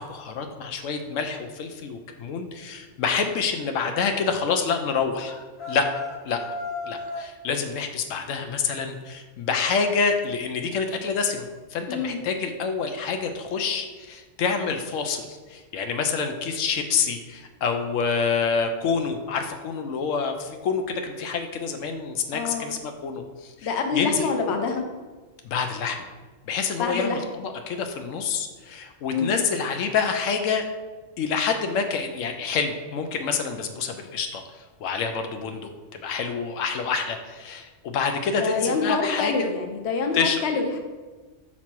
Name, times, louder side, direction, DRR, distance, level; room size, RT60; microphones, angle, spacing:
voice 1, 0.0-5.3 5.7-5.9 6.3-6.4 6.8-24.7 25.4-26.0 26.4-30.7 31.2-35.7 36.0-39.5 40.1-40.4, left 5 dB, 90° left, 5 dB, 1.0 m, -27 dB
sound 1, 5.2-7.3, left 3 dB, 40° left, 0.4 m, -35 dB
voice 2, 11.9-12.2 22.3-22.7 23.6-24.8 26.8-27.2 29.1-29.3 38.4-40.8, left 4 dB, 65° left, 4 dB, 1.0 m, -26 dB
5.9 x 4.2 x 4.5 m, 1.3 s
omnidirectional pair, 1.3 m